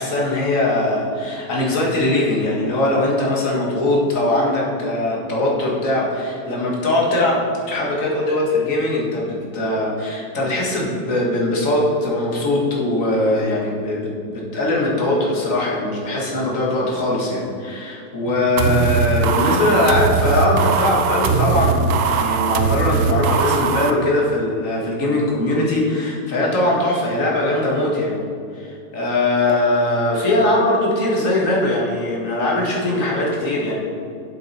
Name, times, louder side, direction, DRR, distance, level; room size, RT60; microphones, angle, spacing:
voice 1, 0.0-28.2 28.5-33.8, left 1 dB, 45° left, -3 dB, 2.1 m, -21 dB
sound 1, 18.6-23.9, right 6 dB, 70° right, 0.7 m, -20 dB
7.8 x 7.4 x 4.3 m, 2.5 s
omnidirectional pair, 1.9 m